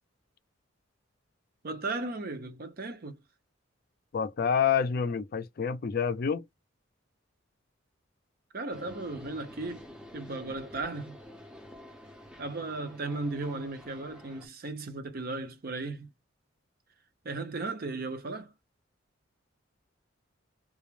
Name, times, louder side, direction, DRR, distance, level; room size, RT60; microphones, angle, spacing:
voice 1, 1.6-3.2 8.5-9.8 10.1-11.2 12.4-16.1 17.2-18.5, right 3 dB, 50° right, 0.6 m, -36 dB
voice 2, 4.1-6.4, left 7 dB, 50° left, 0.4 m, -28 dB
sound 1, 8.7-14.5, left 1 dB, 5° right, 0.5 m, -49 dB
2.3 x 2.0 x 3.0 m
head